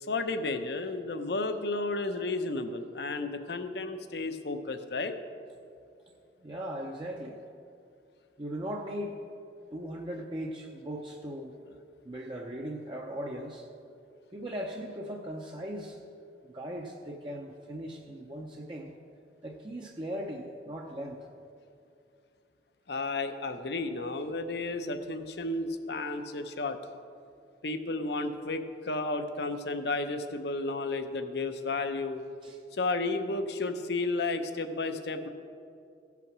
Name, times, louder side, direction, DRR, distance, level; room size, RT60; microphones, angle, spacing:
voice 1, 0.0-5.2 22.9-26.8 27.6-32.2 32.7-35.3, left 3 dB, 70° left, 8 dB, 0.7 m, -32 dB
voice 2, 6.4-7.4 8.4-9.2 9.7-11.6 12.0-13.7 14.3-16.0 16.4-18.9 19.4-21.3 32.4-32.6, equal, 30° right, 0 dB, 0.6 m, -38 dB
15.5 x 5.9 x 6.1 m, 2.5 s
head